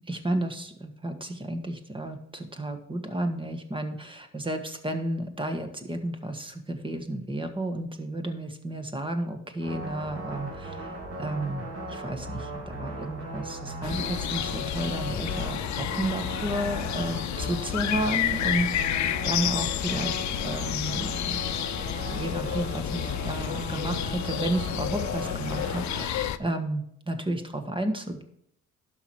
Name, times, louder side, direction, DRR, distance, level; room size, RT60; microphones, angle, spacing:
voice 1, 0.1-21.5 22.0-28.2, right 1 dB, 15° right, 7 dB, 1.5 m, -32 dB
sound 1, 9.6-26.1, right 1 dB, 50° right, 3.4 m, -37 dB
sound 2, 13.8-26.4, left 12 dB, 70° left, 0.6 m, -30 dB
11.5 x 6.0 x 4.7 m, 0.70 s
cardioid pair, 90°, 30 cm